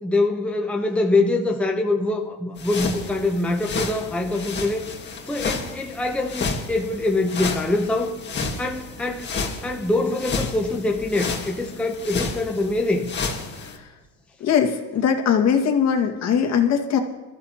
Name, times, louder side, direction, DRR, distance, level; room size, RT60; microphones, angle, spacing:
voice 1, 0.0-4.8 5.3-8.2 8.6-13.1, left 2 dB, 5° left, 2 dB, 0.9 m, -24 dB
sound 1, 2.6-13.8, left 4 dB, 30° left, 2.1 m, -31 dB
voice 2, 14.4-17.0, left 7 dB, 45° left, 3 dB, 2.2 m, -20 dB
22.0 x 14.0 x 3.0 m, 1.2 s
supercardioid pair, 115°, 36 cm